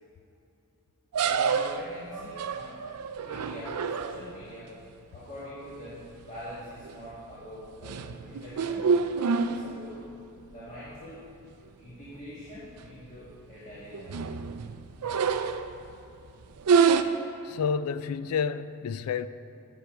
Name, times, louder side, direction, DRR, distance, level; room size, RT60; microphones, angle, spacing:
sound 1, 1.1-4.5 6.1-6.4 6.8-7.1 7.6-10.1 10.5-10.6 10.9-11.0 11.9-12.0 12.3-12.4 12.8-13.2 13.7-15.9 16.6-17.0, right 6 dB, 90° right, 0.4 m, -27 dB
voice 1, 1.2-2.9 3.1-4.8 5.1-8.9 9.2-10.0 10.5-11.3 11.8-14.2, equal, 35° left, -9 dB, 1.7 m, -44 dB
voice 2, 17.4-19.3, left 6 dB, 70° left, 14 dB, 0.3 m, -29 dB
10.0 x 6.4 x 4.7 m, 2.7 s
head